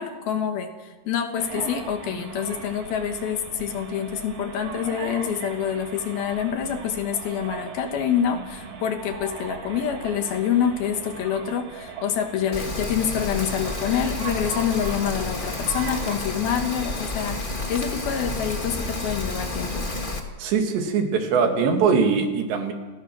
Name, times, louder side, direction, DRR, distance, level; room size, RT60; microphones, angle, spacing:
voice 1, 0.0-19.9, left 8 dB, 65° left, 6 dB, 3.0 m, -27 dB
sound 1, 1.3-16.2, right 5 dB, 50° right, 3.7 m, -39 dB
Rain, 12.5-20.2, left 2 dB, 35° left, 0.7 m, -30 dB
voice 2, 20.4-22.7, right 5 dB, 80° right, 4 dB, 4.4 m, -21 dB
29.0 x 18.0 x 6.2 m, 1.3 s
omnidirectional pair, 5.0 m